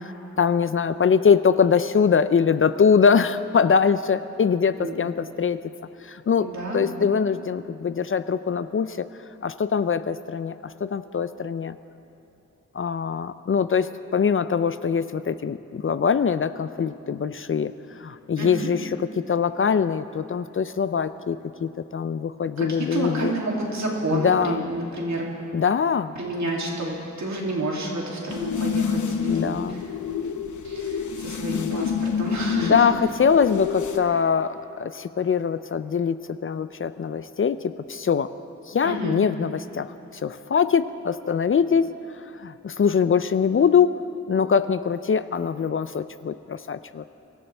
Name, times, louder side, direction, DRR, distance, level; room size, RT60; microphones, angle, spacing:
voice 1, 0.4-5.6 6.0-9.1 9.4-11.8 12.7-23.3 24.1-24.6 25.5-26.1 29.3-29.8 31.5-31.9 32.6-38.3 38.7-44.0 44.3-47.0, left 6 dB, 45° left, 13 dB, 0.4 m, -23 dB
voice 2, 6.4-6.9 18.4-18.7 22.6-25.3 26.1-29.8 30.6-32.8 38.8-39.2, right 2 dB, 65° right, -3 dB, 2.8 m, -30 dB
sound 1, 28.3-34.0, left 6 dB, 75° left, 0.8 m, -28 dB
24.0 x 14.0 x 3.4 m, 2.8 s
wide cardioid pair, 80°, 31 cm